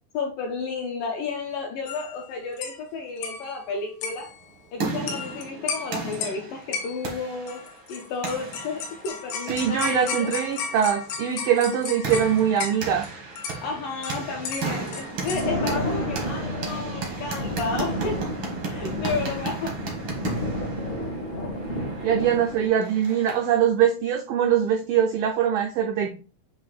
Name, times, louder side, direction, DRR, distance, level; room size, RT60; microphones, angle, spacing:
voice 1, 0.1-4.3 4.7-10.6 13.6-18.4 18.7-19.8, left 4 dB, 75° left, 2.1 m, -32 dB
sound 1, 1.9-2.2 2.6-2.8 3.2-3.6 4.0-4.4 5.1-5.4 5.7-6.4 6.7-7.2 7.5-13.1 13.4-15.5, left 6 dB, 90° left, 3.3 m, -34 dB
sound 2, 4.3-23.6, right 4 dB, 75° right, 1.1 m, -36 dB
voice 2, 9.5-13.1 22.0-26.1, right 9 dB, 90° right, 1.9 m, -22 dB
Thunder, 15.0-22.7, equal, 55° left, 0.8 m, -31 dB
8.3 x 2.8 x 4.1 m
omnidirectional pair, 4.9 m